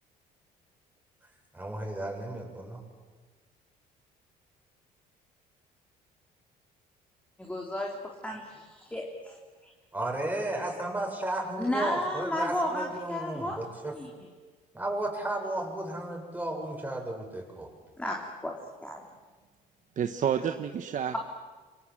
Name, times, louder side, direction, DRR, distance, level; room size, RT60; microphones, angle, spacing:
voice 1, 1.5-2.8 9.9-14.0 14.7-17.7, right 1 dB, 10° right, 1 dB, 6.9 m, -34 dB
voice 2, 7.4-7.9 8.2-9.4 11.6-13.6 13.9-14.1 18.0-18.5 18.8-19.0, left 1 dB, 10° left, 0 dB, 3.5 m, -33 dB
voice 3, 20.0-21.2, right 8 dB, 50° right, 8 dB, 1.2 m, -29 dB
28.5 x 24.0 x 7.8 m, 1.4 s
cardioid pair, 110°, 17 cm